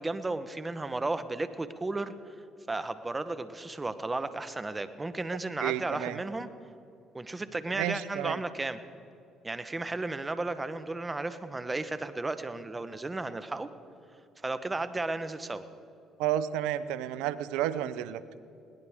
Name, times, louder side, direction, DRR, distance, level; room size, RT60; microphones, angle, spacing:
voice 1, 0.0-2.1 2.7-6.5 7.1-8.8 9.4-13.7 14.4-15.6, right 2 dB, 20° right, 11 dB, 1.0 m, -34 dB
voice 2, 5.6-6.2 7.7-8.4 16.2-18.2, right 12 dB, 85° right, 15 dB, 0.6 m, -31 dB
21.0 x 18.0 x 3.6 m, 2.6 s
supercardioid pair, 70°, 0 cm